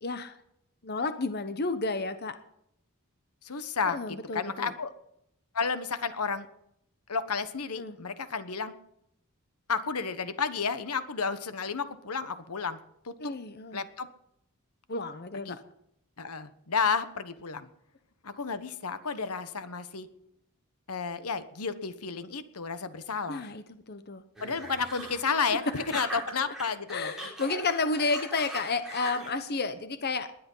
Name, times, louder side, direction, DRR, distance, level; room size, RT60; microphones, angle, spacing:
voice 1, 0.0-0.4 0.8-2.4 3.9-4.7 7.8-8.0 13.2-13.8 14.9-15.6 23.3-24.2 26.9-30.3, left 3 dB, 45° left, 11 dB, 0.9 m, -31 dB
voice 2, 3.4-4.9 5.5-6.5 7.1-8.7 9.7-12.8 13.0-13.3 13.7-14.1 15.3-15.6 16.2-17.7 18.2-20.1 20.9-23.5 24.4-27.1, left 5 dB, 80° left, 12 dB, 1.2 m, -32 dB
sound 1, 24.4-26.6 26.9-29.4, right 1 dB, ahead, 6.0 m, -40 dB
19.5 x 10.5 x 5.6 m, 0.77 s
head